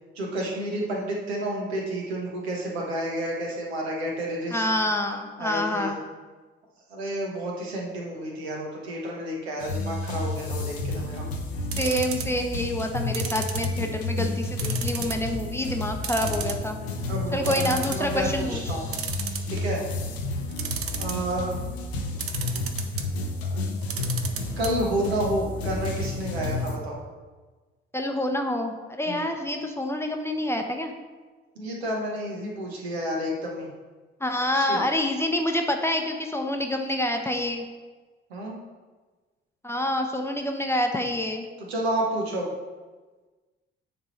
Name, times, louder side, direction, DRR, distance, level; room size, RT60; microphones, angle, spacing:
voice 1, 0.1-4.7 5.4-5.9 6.9-11.2 17.1-18.9 19.5-19.8 21.0-21.6 23.5-23.6 24.6-27.0 29.0-29.3 31.6-33.7 34.5-34.8 38.3-38.6 41.7-42.5, right 1 dB, 75° right, -1 dB, 1.2 m, -30 dB
voice 2, 4.5-6.0 11.8-16.8 17.3-18.7 27.9-30.9 34.2-37.6 39.6-41.5, left 1 dB, 10° left, 3 dB, 0.8 m, -27 dB
sound 1, 9.6-26.8, left 2 dB, 75° left, 0.8 m, -31 dB
sound 2, 11.7-12.4 13.1-14.1 14.6-15.3 15.6-15.7 16.0-16.9 17.2-17.3 17.5-18.1 18.9-19.8 20.5-21.3 22.2-23.1 23.8-24.7 25.0-25.1 25.3-25.4, right 7 dB, 45° right, 0.8 m, -33 dB
9.4 x 3.6 x 4.1 m, 1.3 s
figure-of-eight pair, 50°, 32 cm